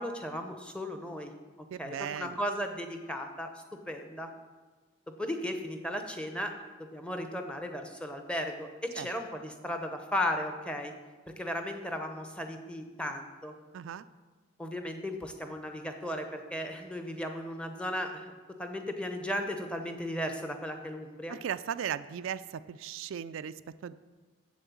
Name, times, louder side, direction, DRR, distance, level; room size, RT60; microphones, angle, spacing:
voice 1, 0.0-1.3 1.8-4.3 5.1-6.5 6.8-10.9 11.3-13.5 14.6-18.3 18.6-21.4, left 1 dB, 5° left, 5 dB, 0.7 m, -36 dB
voice 2, 1.7-2.3 9.0-9.1 13.7-14.0 21.3-23.5 23.8-24.0, right 8 dB, 75° right, 13 dB, 0.3 m, -37 dB
7.8 x 7.3 x 7.0 m, 1.3 s
head